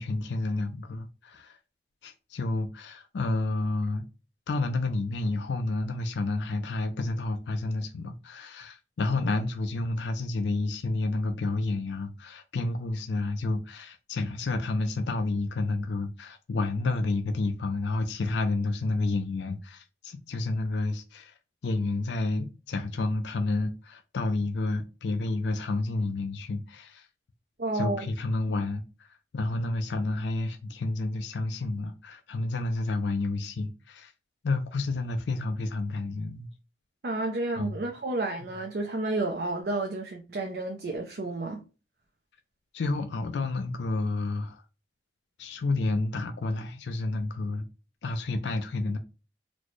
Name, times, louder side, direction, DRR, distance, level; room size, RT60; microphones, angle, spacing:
voice 1, 0.0-1.6 2.0-4.1 4.5-21.3 21.6-27.1 27.7-34.1 34.4-36.5 37.6-37.8 42.7-44.6 45.4-47.7 48.0-49.0, left 2 dB, 80° left, 0.4 m, -30 dB
voice 2, 27.6-28.1 37.0-41.6, right 2 dB, 60° right, 0.5 m, -31 dB
4.1 x 2.1 x 3.0 m
head